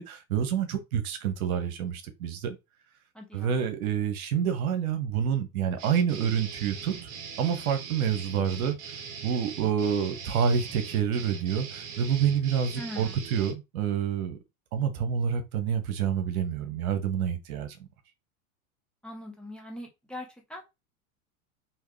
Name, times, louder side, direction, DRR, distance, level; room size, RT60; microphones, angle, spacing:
voice 1, 0.0-2.6 3.3-6.9 7.4-8.8 9.2-14.4 14.7-17.8, right 8 dB, 75° right, 1.2 m, -28 dB
voice 2, 3.1-3.6 12.7-13.2 19.0-20.6, left 1 dB, ahead, 1.1 m, -41 dB
sound 1, 5.8-13.5, right 6 dB, 50° right, 1.4 m, -41 dB
3.7 x 3.0 x 3.2 m
hypercardioid pair, 110°, 43 cm